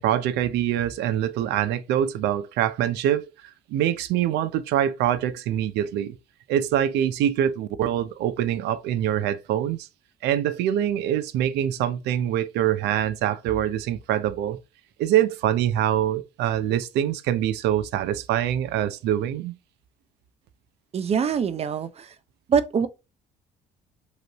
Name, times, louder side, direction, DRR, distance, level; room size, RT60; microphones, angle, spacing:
voice 1, 0.0-3.3 3.7-6.1 6.5-9.9 10.2-14.6 15.0-19.5, right 11 dB, 80° right, 0.6 m, -24 dB
voice 2, 20.9-22.1 22.5-22.9, right 7 dB, 40° right, 0.6 m, -24 dB
5.2 x 3.2 x 2.9 m
cardioid pair, 110°, 17 cm